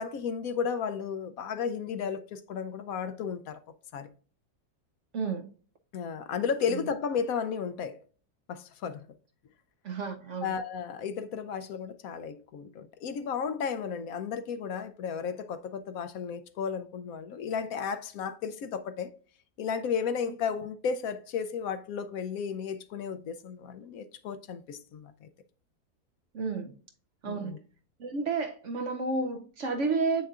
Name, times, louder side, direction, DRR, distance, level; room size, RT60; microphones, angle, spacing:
voice 1, 0.0-3.6 3.9-4.1 5.9-8.0 8.5-9.0 10.4-19.1 19.6-25.3 27.3-27.6, left 6 dB, 70° left, 1.0 m, -33 dB
voice 2, 5.1-5.5 9.8-10.5 26.3-26.7 27.2-27.5 28.0-30.3, right 4 dB, 60° right, 0.8 m, -31 dB
7.9 x 6.4 x 2.4 m
omnidirectional pair, 1.7 m